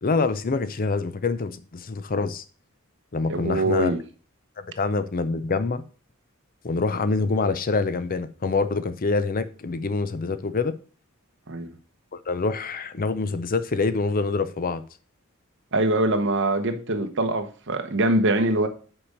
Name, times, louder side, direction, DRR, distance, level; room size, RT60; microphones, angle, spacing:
voice 1, 0.0-2.4 3.1-3.9 4.8-5.8 6.6-10.7 12.1-14.8, left 3 dB, 45° left, 0.6 m, -25 dB
voice 2, 3.3-4.0 11.5-11.7 15.7-18.7, right 2 dB, 60° right, 1.0 m, -23 dB
5.9 x 4.9 x 6.5 m
head